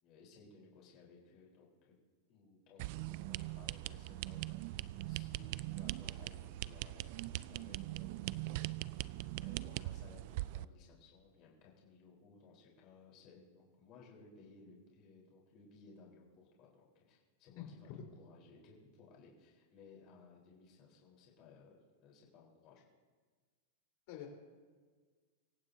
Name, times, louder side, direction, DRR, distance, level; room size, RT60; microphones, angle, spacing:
voice 1, 0.0-1.9 2.3-4.8 5.1-7.1 7.5-8.7 9.4-17.9 18.2-22.8, left 4 dB, 35° left, -3 dB, 4.2 m, -60 dB
sound 1, 2.8-10.6, right 17 dB, 50° right, 0.3 m, -41 dB
voice 2, 17.6-18.0 24.1-24.3, left 10 dB, 50° left, 0 dB, 4.1 m, -47 dB
25.5 x 15.5 x 2.8 m, 1.5 s
supercardioid pair, 160°, 0 cm